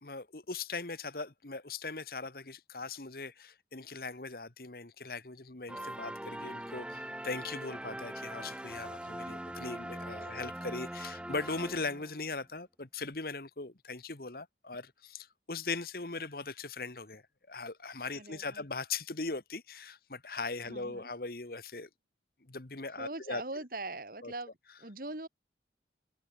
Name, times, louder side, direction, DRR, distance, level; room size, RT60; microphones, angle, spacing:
voice 1, 0.0-17.2 17.5-21.9 22.5-23.4 24.2-24.3, left 3 dB, 55° left, 1.5 m, -40 dB
sound 1, 5.7-12.3, right 1 dB, 5° right, 1.3 m, -42 dB
voice 2, 18.1-18.6 20.7-21.1 23.0-24.5 24.8-25.3, right 2 dB, 50° right, 2.7 m, -41 dB
head